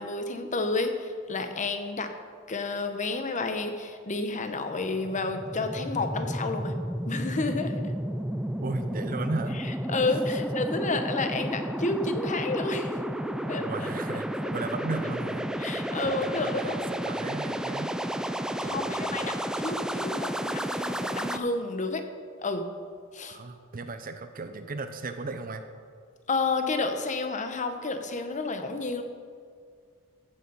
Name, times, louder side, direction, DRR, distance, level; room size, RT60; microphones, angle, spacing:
voice 1, 0.0-2.1 2.5-6.8 7.1-7.9 9.9-13.0 13.5-13.7 15.6-16.8 18.5-22.0 22.4-22.6 23.1-23.4 26.3-29.0, left 3 dB, 35° left, 7 dB, 0.9 m, -30 dB
sound 1, 4.8-21.4, right 1 dB, 5° right, 0.3 m, -32 dB
voice 2, 8.6-9.6 13.5-15.5 16.0-17.9 18.6-19.4 23.3-25.6, right 3 dB, 40° right, 8 dB, 0.7 m, -36 dB
14.5 x 6.8 x 5.5 m, 2.1 s
head